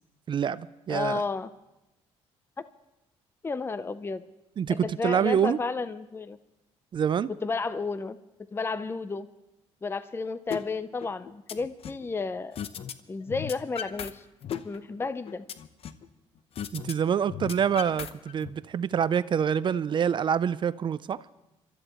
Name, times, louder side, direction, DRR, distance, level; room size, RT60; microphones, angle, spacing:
voice 1, 0.3-1.2 4.6-5.6 6.9-7.3 16.7-21.2, right 8 dB, 45° right, 0.4 m, -26 dB
voice 2, 0.9-1.5 2.6-2.7 3.4-4.2 4.7-6.4 7.4-8.2 8.5-9.3 9.8-12.6 13.1-14.2 14.6-15.4, left 4 dB, 20° left, 0.6 m, -32 dB
sound 1, 10.5-10.6 11.0-12.1 12.6-12.9 13.2-14.1 14.4-16.1 16.6-16.9 17.2-18.5, left 9 dB, 55° left, 0.8 m, -36 dB
26.0 x 13.0 x 3.0 m
supercardioid pair, 80°, 12 cm